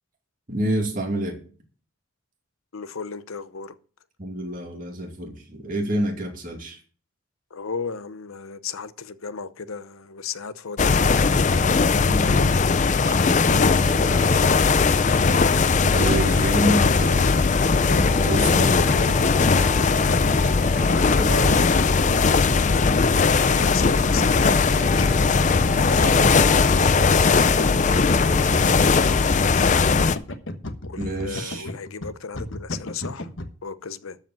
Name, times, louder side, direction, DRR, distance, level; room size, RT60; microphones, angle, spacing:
voice 1, 0.5-1.4 4.2-6.8 11.9-12.5 13.0-14.5 15.8-17.3 17.8-19.3 21.2-21.7 25.8-26.4 31.0-31.7, right 1 dB, 40° right, 2.5 m, -29 dB
voice 2, 2.7-3.8 7.5-11.7 16.2-17.0 20.9-22.2 23.2-24.5 24.9-25.2 25.8-28.8 29.5-30.0 30.8-33.3 33.6-34.2, left 5 dB, 90° left, 0.8 m, -35 dB
sound 1, 10.8-30.2, left 4 dB, 35° left, 0.5 m, -19 dB
sound 2, 13.8-30.2, right 2 dB, 10° right, 0.6 m, -37 dB
sound 3, 16.4-33.5, left 1 dB, 65° left, 1.2 m, -33 dB
13.0 x 5.0 x 7.5 m
head